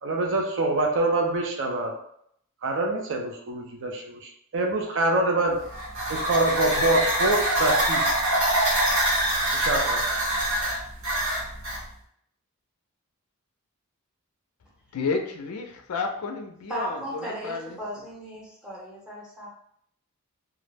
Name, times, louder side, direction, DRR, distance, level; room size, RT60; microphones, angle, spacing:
voice 1, 0.0-2.0 2.6-5.7 6.1-8.1 9.5-10.1, right 2 dB, 60° right, 1 dB, 0.5 m, -25 dB
sound 1, 5.6-11.8, right 1 dB, 80° right, 1.0 m, -25 dB
voice 2, 14.9-17.8, left 4 dB, 80° left, 4 dB, 0.4 m, -31 dB
voice 3, 16.7-19.5, right 1 dB, 5° right, -5 dB, 0.7 m, -36 dB
2.3 x 2.0 x 3.2 m, 0.69 s
head